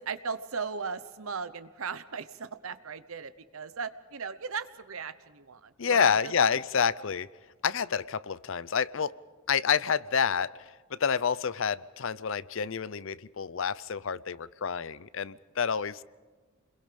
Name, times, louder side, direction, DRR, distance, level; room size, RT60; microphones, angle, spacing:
voice 1, 0.0-6.3, right 5 dB, 75° right, 12 dB, 1.0 m, -37 dB
voice 2, 5.8-7.3 7.6-9.1 9.5-10.5 10.9-16.0, left 6 dB, 65° left, 19 dB, 0.6 m, -28 dB
29.0 x 22.0 x 5.2 m, 1.4 s
head